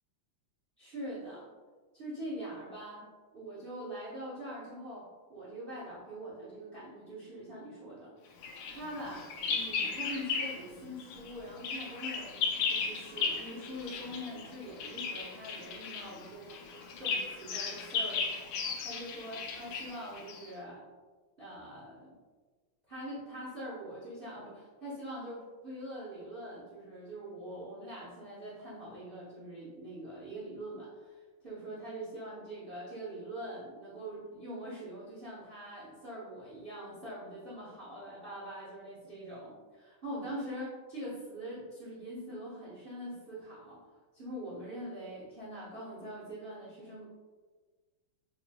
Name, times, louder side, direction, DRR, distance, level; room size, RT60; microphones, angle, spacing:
voice 1, 0.8-1.5 1.9-3.0 3.3-5.0 5.3-8.1 8.7-16.5 17.0-18.3 18.6-20.8 21.4-22.1 22.9-43.8 44.1-47.0, right 1 dB, 50° right, -9 dB, 0.6 m, -43 dB
Bird vocalization bird call bird song, 8.4-10.7 11.0-20.5, left 5 dB, 80° left, 1.3 m, -36 dB
4.7 x 3.0 x 2.2 m, 1.4 s
omnidirectional pair, 2.4 m